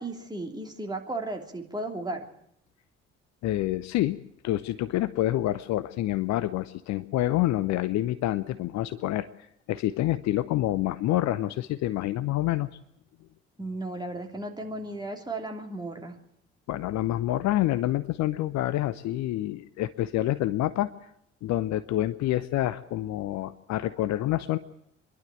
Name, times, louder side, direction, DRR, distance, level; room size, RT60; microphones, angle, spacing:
voice 1, 0.0-2.2 13.6-16.2, right 2 dB, 10° right, 2 dB, 3.2 m, -35 dB
voice 2, 3.4-4.2 4.4-9.3 9.7-12.7 16.7-20.9 21.4-24.6, left 14 dB, 50° left, 14 dB, 0.7 m, -27 dB
25.5 x 11.5 x 9.0 m, 0.75 s
figure-of-eight pair, 45°, 35 cm